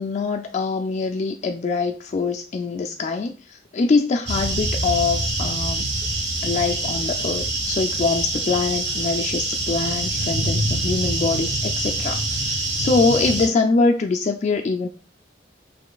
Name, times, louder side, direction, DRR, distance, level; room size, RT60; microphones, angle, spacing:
voice 1, 0.0-5.9 6.4-14.9, left 4 dB, 40° left, 4 dB, 0.3 m, -23 dB
sound 1, 4.3-13.5, right 2 dB, 70° right, 1.1 m, -25 dB
5.0 x 3.1 x 2.3 m, 0.35 s
head